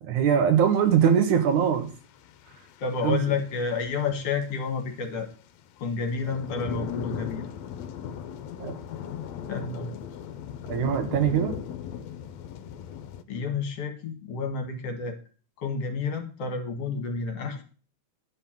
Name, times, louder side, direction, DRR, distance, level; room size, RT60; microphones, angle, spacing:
voice 1, 0.0-1.9 3.0-3.2 8.6-8.7 10.7-11.6, right 8 dB, 85° right, 8 dB, 2.8 m, -22 dB
sound 1, 0.6-0.8 1.0-13.2, left 8 dB, 75° left, 1.9 m, -38 dB
voice 2, 2.8-5.3 5.8-7.5 9.5-10.0 13.3-15.2 15.6-17.6, left 5 dB, 60° left, 6 dB, 2.5 m, -30 dB
11.0 x 5.6 x 7.3 m, 0.38 s
omnidirectional pair, 3.3 m